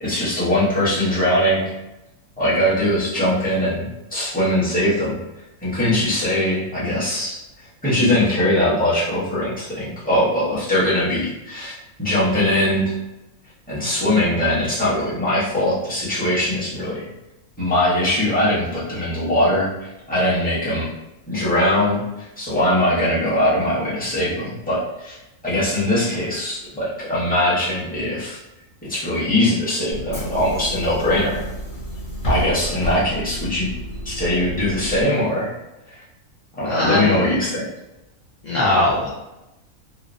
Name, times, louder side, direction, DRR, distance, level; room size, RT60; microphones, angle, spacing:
voice 1, 0.0-1.6 2.4-5.2 5.6-11.7 12.0-13.0 13.7-17.1 17.6-20.9 21.3-25.2 25.4-28.4 28.8-31.4 32.2-33.7 34.0-35.5 35.9-36.0 36.6-37.6, left 1 dB, 10° left, -9 dB, 0.6 m, -21 dB
Bus / Engine, 29.9-35.0, equal, 40° left, 1.0 m, -30 dB
voice 2, 36.7-37.2 38.4-39.1, left 2 dB, 75° left, -7 dB, 0.4 m, -19 dB
3.0 x 2.0 x 2.5 m, 0.97 s
omnidirectional pair, 1.5 m